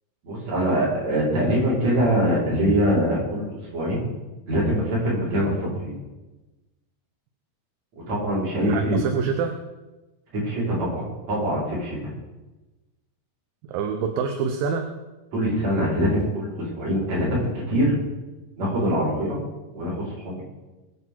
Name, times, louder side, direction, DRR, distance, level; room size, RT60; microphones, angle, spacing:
voice 1, 0.2-4.1 4.5-5.9 8.1-9.0 10.3-12.0 15.3-17.9 18.6-19.4 19.7-20.4, equal, 40° right, -6 dB, 5.5 m, -23 dB
voice 2, 8.6-9.6 13.7-14.9, right 6 dB, 70° right, 5 dB, 2.5 m, -26 dB
22.5 x 8.2 x 4.7 m, 1.1 s
omnidirectional pair, 4.6 m